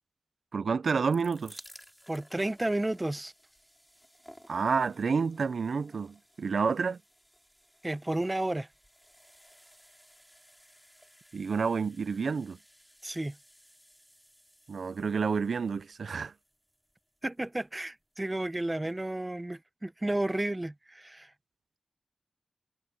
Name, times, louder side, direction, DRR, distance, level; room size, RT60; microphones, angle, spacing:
voice 1, 0.5-1.6 4.5-7.0 11.3-12.6 14.7-16.3, right 5 dB, 80° right, 0.5 m, -29 dB
sound 1, 0.8-17.8 18.6-18.7 18.9-19.0, equal, ahead, 4.1 m, -58 dB
voice 2, 2.1-3.3 7.8-8.7 13.0-13.4 17.2-21.3, right 1 dB, 20° right, 0.7 m, -32 dB
wide cardioid pair, 70°, 0 cm